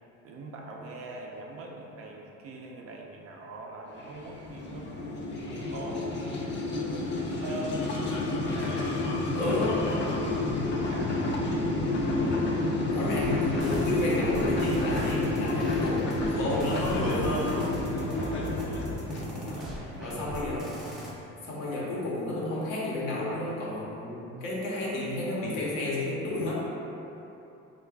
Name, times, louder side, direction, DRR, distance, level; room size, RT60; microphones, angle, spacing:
voice 1, 0.2-4.9 5.4-7.9 8.4-9.6 10.0-11.8 12.2-12.6 17.9-18.6 19.1-20.3, right 2 dB, 50° right, 0 dB, 0.5 m, -43 dB
sound 1, 4.0-20.6, left 2 dB, 35° left, 0.5 m, -30 dB
voice 2, 9.3-9.8 12.9-16.0 16.2-17.8 20.0-20.7 21.4-26.6, left 1 dB, 85° left, -6 dB, 1.0 m, -31 dB
sound 2, 13.1-21.1, equal, ahead, 0.6 m, -40 dB
3.7 x 2.4 x 3.4 m, 2.9 s
cardioid pair, 110°, 31 cm